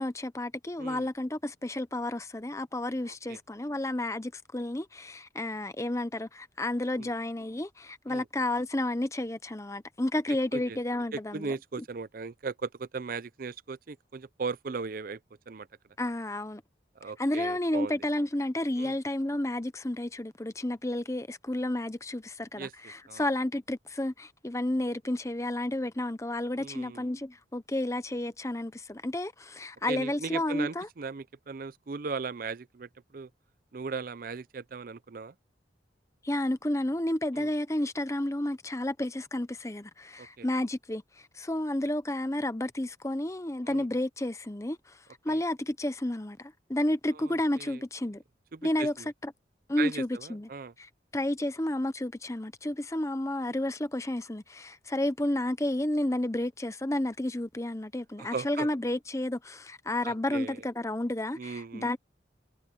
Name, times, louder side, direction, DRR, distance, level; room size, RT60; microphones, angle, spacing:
voice 1, 0.0-11.8 16.0-16.6 17.2-30.9 36.2-45.0 45.2-48.2 48.6-48.9 49.2-49.3 49.7-50.5 50.8-62.0, left 1 dB, 15° left, 0.8 m, -31 dB
voice 2, 3.1-3.4 7.0-7.1 8.1-8.3 10.5-10.8 11.1-15.2 15.5-15.7 17.0-18.0 18.8-19.0 22.5-22.7 23.1-23.2 26.6-27.1 29.9-33.3 33.7-35.3 37.3-37.5 40.2-40.5 43.6-43.9 45.3-45.4 47.1-47.8 48.5-49.1 49.8-50.7 58.2-58.7 60.0-60.6 61.4-61.9, right 4 dB, 50° right, 0.5 m, -38 dB
head